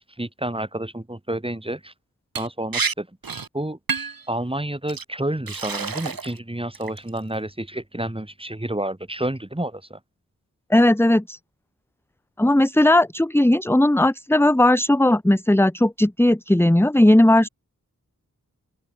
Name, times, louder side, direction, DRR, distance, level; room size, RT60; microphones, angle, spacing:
voice 1, 0.0-1.9 2.4-3.1 3.5-3.8 4.3-10.0, right 1 dB, 15° right, 5.0 m, -29 dB
Liquid, 2.4-2.5 2.7-2.9 3.2-3.5 3.9-4.2 4.9-5.0 5.5-6.4 6.7-7.2, right 5 dB, 80° right, 2.9 m, -28 dB
voice 2, 10.7-11.4 12.4-17.5, left 1 dB, 5° left, 1.2 m, -17 dB
open air
wide cardioid pair, 75°, 34 cm